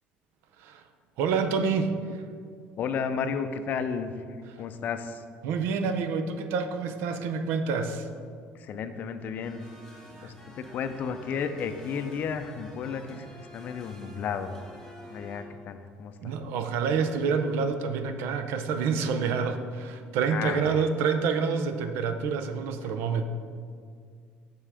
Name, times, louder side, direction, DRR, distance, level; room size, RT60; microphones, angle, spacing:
voice 1, 1.2-2.2 5.4-8.1 10.2-10.3 16.2-23.2, right 5 dB, 70° right, 8 dB, 0.6 m, -28 dB
voice 2, 2.8-5.3 8.5-9.6 10.2-14.5 15.1-16.4 20.3-20.9 22.8-22.9, left 6 dB, 45° left, 9 dB, 0.5 m, -33 dB
sound 1, 9.4-15.4, equal, 10° left, 1.5 m, -49 dB
6.0 x 5.5 x 4.9 m, 2.2 s
cardioid pair, 135°, 4 cm